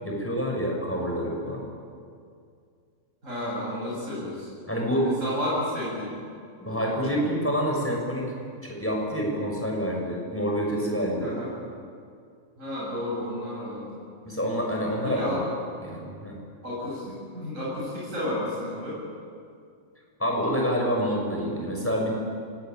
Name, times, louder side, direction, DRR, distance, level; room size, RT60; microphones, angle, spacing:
voice 1, 0.0-1.6 4.7-5.1 6.6-8.3 8.6-11.3 14.2-15.4 15.8-16.4 20.2-22.1, equal, 10° left, -1 dB, 6.1 m, -27 dB
voice 2, 3.2-4.6 5.2-6.1 6.6-7.3 11.2-11.5 12.6-14.0 15.0-15.4 16.6-19.0, left 1 dB, 65° right, -6 dB, 8.4 m, -32 dB
25.5 x 20.0 x 9.3 m, 2.3 s
omnidirectional pair, 1.5 m